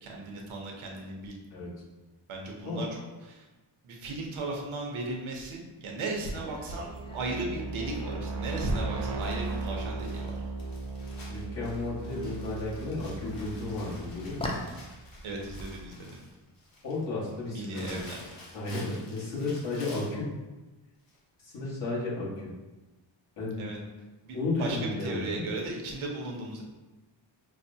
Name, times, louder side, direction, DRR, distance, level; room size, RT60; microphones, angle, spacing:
voice 1, 0.0-1.4 2.3-3.5 3.8-10.3 15.2-16.2 17.4-18.2 23.6-23.8 24.2-26.6, right 2 dB, 85° right, 0 dB, 0.8 m, -36 dB
sound 1, 6.2-17.5, left 1 dB, 15° left, 0.3 m, -45 dB
sound 2, 6.3-15.1, right 3 dB, 50° right, 0.5 m, -37 dB
Crumpling crinkling, 9.2-20.2 21.1-21.2 21.5-21.6, left 2 dB, 45° left, 1.0 m, -50 dB
voice 2, 11.3-14.5 16.8-18.0 18.5-20.3 21.4-22.5 23.4-23.7 24.3-25.5, left 2 dB, 65° left, -7 dB, 1.4 m, -33 dB
5.7 x 2.1 x 2.7 m, 1.2 s
wide cardioid pair, 130°, 47 cm